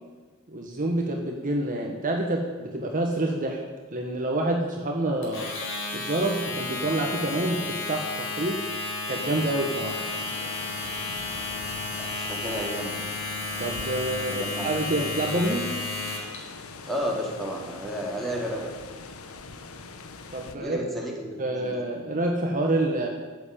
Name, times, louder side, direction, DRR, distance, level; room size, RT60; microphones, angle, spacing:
voice 1, 0.5-3.6 3.9-5.5 5.9-8.7 9.1-10.0 13.6-15.7 20.3-20.9 21.4-23.1, right 1 dB, 40° right, 1 dB, 1.5 m, -27 dB
Domestic sounds home sounds, 5.2-16.4, left 3 dB, 65° left, 4.2 m, -32 dB
sound 1, 9.8-20.6, left 4 dB, 85° left, 1.2 m, -42 dB
voice 2, 12.2-13.1 14.3-14.8 16.9-18.7 20.6-21.8, equal, ahead, -2 dB, 3.0 m, -32 dB
14.0 x 8.3 x 8.6 m, 1.4 s
head